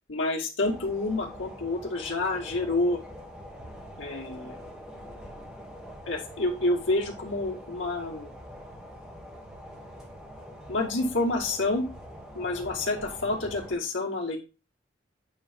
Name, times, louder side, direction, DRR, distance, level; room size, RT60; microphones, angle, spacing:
voice 1, 0.1-3.0 4.0-4.6 6.1-8.3 10.7-11.9 12.3-14.4, left 2 dB, 80° left, 0 dB, 2.3 m, -28 dB
sound 1, 0.6-13.7, equal, 5° right, 1.6 m, -44 dB
8.6 x 3.5 x 5.3 m, 0.29 s
head